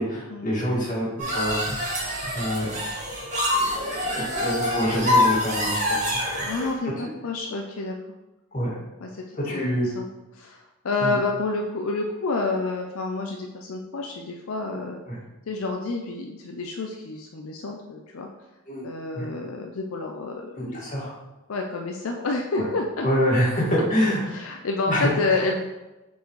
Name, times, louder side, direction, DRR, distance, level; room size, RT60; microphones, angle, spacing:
voice 1, 0.0-1.7 2.3-2.7 3.5-6.5 8.5-8.7 9.3-9.9 11.0-11.1 15.1-15.2 18.7-18.9 19.1-19.3 20.6-21.1 22.5-22.6 23.0-24.2 24.9-25.4, equal, 35° left, -5 dB, 2.0 m, -26 dB
sound 1, 1.2-6.7, left 1 dB, 35° right, 1.8 m, -25 dB
voice 2, 6.4-8.0 9.0-10.1 10.3-15.0 15.5-18.3 18.8-20.9 21.5-23.1 24.2-25.6, left 3 dB, 75° left, 2 dB, 0.5 m, -29 dB
6.8 x 4.6 x 3.2 m, 1.1 s
head